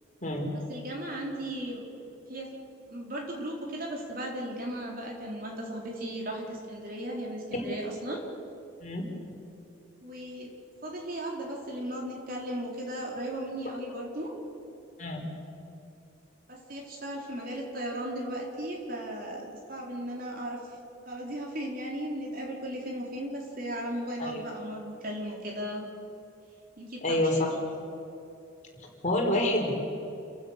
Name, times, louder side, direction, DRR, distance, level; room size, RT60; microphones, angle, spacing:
voice 1, 0.7-1.8 2.3-2.6 2.9-8.2 10.0-10.5 10.8-14.4 16.5-20.6 21.0-25.9 26.8-27.4, right 1 dB, 50° right, -1 dB, 4.3 m, -36 dB
voice 2, 27.0-27.6 29.0-29.7, left 1 dB, 40° left, 0 dB, 4.3 m, -27 dB
29.0 x 15.5 x 6.7 m, 2.7 s
head